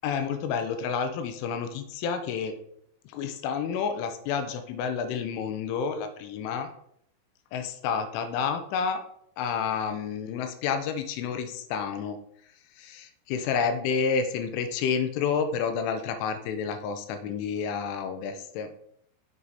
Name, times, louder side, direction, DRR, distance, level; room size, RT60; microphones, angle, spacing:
voice 1, 0.0-2.5 3.1-6.7 7.5-9.0 9.4-12.2 12.8-18.7, left 6 dB, 80° left, 8 dB, 3.1 m, -30 dB
8.0 x 7.2 x 4.1 m, 0.70 s
omnidirectional pair, 5.9 m